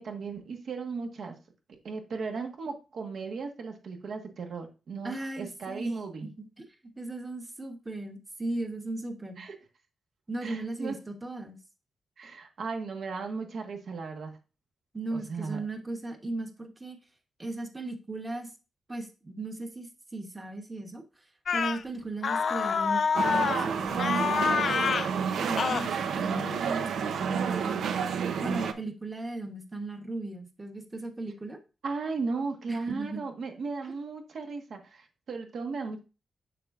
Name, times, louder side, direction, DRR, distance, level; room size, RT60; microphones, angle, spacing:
voice 1, 0.0-1.4 1.8-6.3 9.4-9.5 10.4-11.0 12.2-14.3 15.1-15.6 31.8-36.0, right 4 dB, 65° right, 3 dB, 1.4 m, -36 dB
voice 2, 5.0-6.0 6.6-6.7 7.0-9.4 10.3-11.6 14.9-17.0 17.4-18.5 18.9-21.0 21.5-24.8 25.4-28.0 28.4-31.6 32.7-33.2, right 2 dB, 15° right, 5 dB, 1.1 m, -37 dB
sound 1, 21.5-21.8 22.2-23.7 24.0-25.1 25.6-25.9, left 6 dB, 55° left, 0.4 m, -27 dB
sound 2, 23.2-28.7, right 7 dB, 85° right, 0.7 m, -30 dB
6.8 x 6.7 x 2.5 m, 0.30 s
wide cardioid pair, 130°, 0 cm